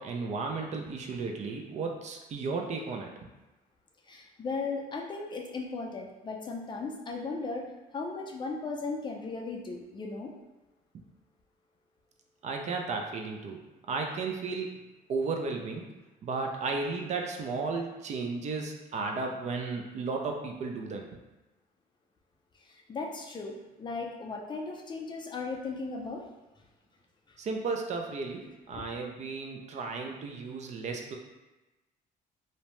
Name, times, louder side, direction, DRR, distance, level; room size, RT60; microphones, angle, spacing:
voice 1, 0.0-3.3 12.4-13.6 13.9-14.8 15.1-15.8 16.2-21.1 27.4-31.2, right 4 dB, 45° right, 2 dB, 0.4 m, -34 dB
voice 2, 4.1-7.7 7.9-10.3 22.9-26.2, left 3 dB, 25° left, 0 dB, 0.4 m, -36 dB
2.7 x 2.1 x 3.0 m, 1.1 s
cardioid pair, 110°, 17 cm